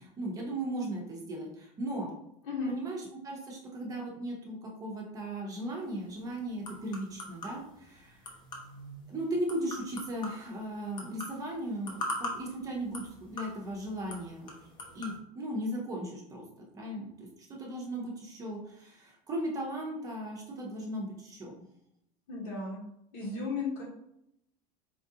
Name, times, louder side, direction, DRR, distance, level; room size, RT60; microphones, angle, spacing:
voice 1, 0.0-2.1 2.7-8.3 9.1-14.5 14.9-16.4 16.7-21.6, right 1 dB, 20° right, -1 dB, 0.7 m, -37 dB
sound 1, 5.7-15.2, left 1 dB, 25° left, 0.7 m, -43 dB
voice 2, 22.3-22.8 23.1-23.8, left 4 dB, 85° left, -7 dB, 1.1 m, -34 dB
4.3 x 2.4 x 2.7 m, 0.77 s
cardioid pair, 170°, 17 cm